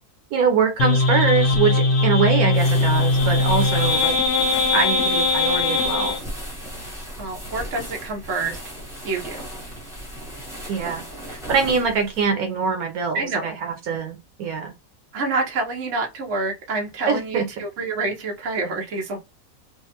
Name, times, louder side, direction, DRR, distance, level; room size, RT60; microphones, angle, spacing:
voice 1, 0.3-4.1 4.7-6.2 10.7-11.0 11.3-14.7 17.1-17.4, right 5 dB, 80° right, 1.3 m, -23 dB
sound 1, 0.8-6.2, left 2 dB, 75° left, 0.5 m, -20 dB
sound 2, 2.5-12.3, equal, ahead, 1.0 m, -36 dB
voice 2, 7.2-8.6 9.0-9.5 13.1-13.5 15.1-19.2, right 3 dB, 60° right, 1.2 m, -27 dB
3.4 x 2.0 x 2.8 m
omnidirectional pair, 1.5 m